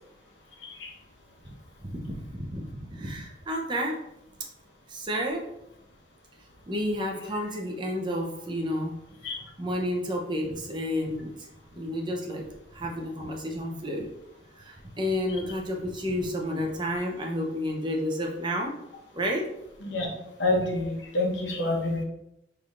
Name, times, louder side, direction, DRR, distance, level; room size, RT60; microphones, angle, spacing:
voice 1, 1.8-4.0 4.9-5.4 6.7-8.9 9.2-14.1 14.5-18.7 19.1-19.4, equal, 25° right, 0 dB, 0.6 m, -31 dB
voice 2, 20.4-22.0, left 2 dB, 90° left, 0 dB, 1.0 m, -27 dB
5.6 x 3.3 x 2.5 m, 0.85 s
head